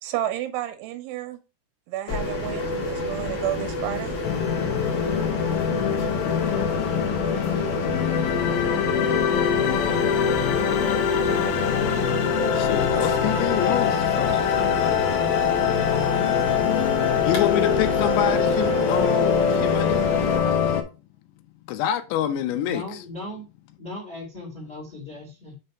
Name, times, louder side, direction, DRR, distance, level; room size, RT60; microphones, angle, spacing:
voice 1, 0.0-1.4 1.9-4.2, right 12 dB, 80° right, 2.9 m, -31 dB
sound 1, 2.1-20.4, left 1 dB, 40° left, 1.7 m, -30 dB
sound 2, 4.2-20.8, left 8 dB, 75° left, 2.4 m, -23 dB
voice 2, 12.5-14.4 17.2-20.0 21.7-23.0, left 11 dB, 90° left, 2.9 m, -27 dB
sound 3, 15.3-20.5, right 3 dB, 60° right, 1.2 m, -40 dB
voice 3, 15.9-16.4 22.6-23.4 23.8-25.5, left 1 dB, 25° left, 1.4 m, -38 dB
6.6 x 3.4 x 5.4 m
omnidirectional pair, 5.0 m